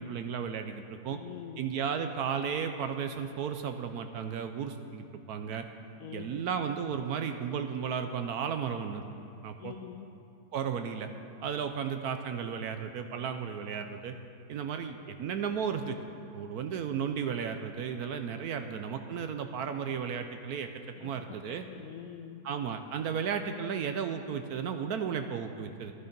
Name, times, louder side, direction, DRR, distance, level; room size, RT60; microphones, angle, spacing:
voice 1, 0.0-1.2 1.6-5.7 6.1-9.0 9.4-9.7 10.5-11.1 11.4-14.2 14.5-16.0 16.3-20.7 21.0-21.6 22.4-25.9, right 7 dB, 70° right, 7 dB, 1.0 m, -34 dB
voice 2, 1.1-1.7 6.0-6.5 9.6-10.1 20.9-22.5, left 9 dB, 75° left, 5 dB, 0.8 m, -46 dB
13.0 x 11.5 x 5.2 m, 2.6 s
omnidirectional pair, 2.0 m